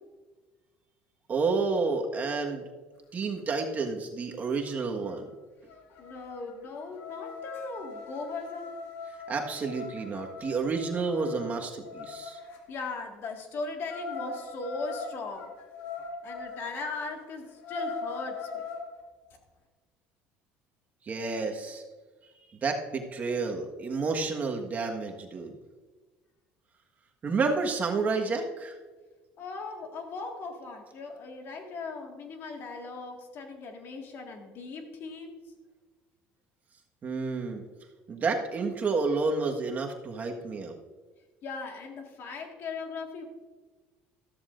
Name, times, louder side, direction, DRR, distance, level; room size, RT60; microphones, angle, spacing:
voice 1, 1.3-2.6 3.1-5.2 9.3-12.4 21.0-21.8 22.6-25.6 27.2-28.8 37.0-37.6 38.1-40.8, right 4 dB, 35° right, 2 dB, 1.5 m, -30 dB
sound 1, 4.6-4.7 5.0-5.3 5.7-12.6 13.9-16.7 17.1-17.2 17.5-18.9, left 4 dB, 70° left, 1.9 m, -40 dB
voice 2, 6.0-8.7 12.3-15.5 16.2-18.6 29.4-35.4 41.4-43.2, left 3 dB, 55° left, 3 dB, 1.9 m, -38 dB
13.5 x 13.0 x 2.6 m, 1.3 s
supercardioid pair, 100°, 5 cm